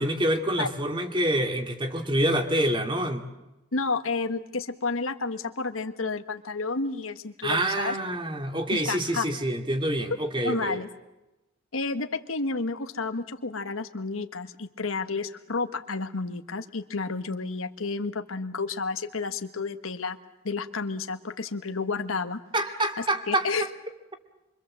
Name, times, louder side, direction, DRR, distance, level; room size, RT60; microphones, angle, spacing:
voice 1, 0.0-3.2 7.4-10.8 22.5-23.5, right 1 dB, 25° right, 5 dB, 2.4 m, -26 dB
voice 2, 3.7-8.0 8.7-9.4 10.4-10.9 11.7-20.2 20.4-22.4 23.0-23.7, left 4 dB, 85° left, 8 dB, 1.4 m, -31 dB
26.5 x 24.5 x 7.6 m, 0.96 s
head